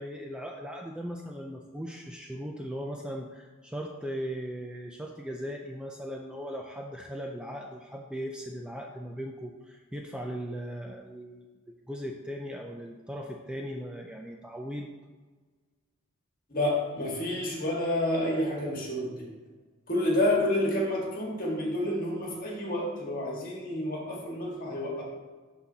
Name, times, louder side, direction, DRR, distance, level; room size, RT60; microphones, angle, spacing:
voice 1, 0.0-11.5 11.9-14.9, equal, 5° right, 2 dB, 0.3 m, -38 dB
voice 2, 16.5-19.3 19.9-25.0, left 1 dB, 45° left, -2 dB, 1.7 m, -29 dB
11.5 x 4.0 x 2.8 m, 1.4 s
head